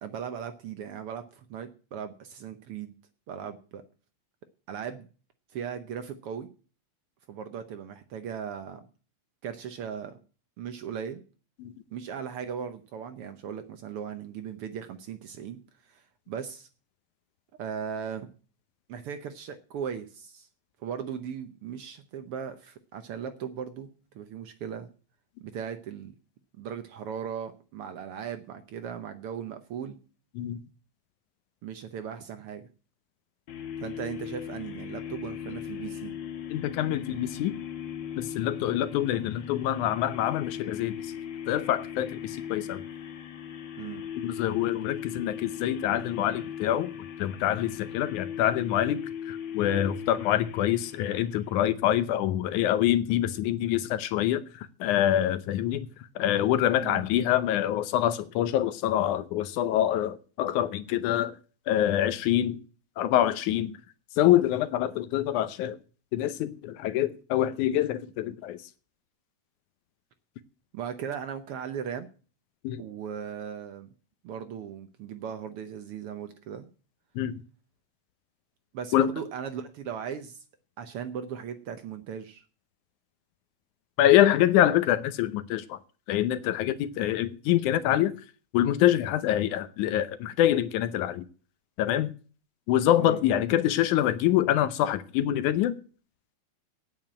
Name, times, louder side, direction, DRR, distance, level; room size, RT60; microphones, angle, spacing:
voice 1, 0.0-2.9 3.3-3.8 4.7-5.1 5.5-6.5 7.3-8.9 9.4-10.2 10.6-11.2 11.9-15.6 15.8-16.7 17.6-18.3 18.9-20.5 20.8-24.9 25.4-26.1 26.6-30.0 31.6-32.7 33.8-36.1 43.8-44.0 56.8-57.0 70.7-72.1 72.8-73.9 74.2-76.7 78.7-80.4 80.8-82.4 93.0-93.2, right 8 dB, 70° right, 1.4 m, -37 dB
sound 1, 33.5-51.8, left 9 dB, 60° left, 1.3 m, -38 dB
voice 2, 36.5-37.5 38.2-41.0 41.5-42.8 44.1-46.9 47.2-49.0 49.3-54.4 54.8-55.9 56.2-61.3 61.7-62.6 63.0-63.7 64.2-65.8 66.1-68.6 72.6-72.8 77.2-77.4 78.9-79.1 84.0-85.8 86.1-88.1 88.5-91.2 91.8-92.1 92.7-95.7, left 12 dB, 85° left, 2.2 m, -25 dB
9.4 x 9.0 x 8.7 m
omnidirectional pair, 3.4 m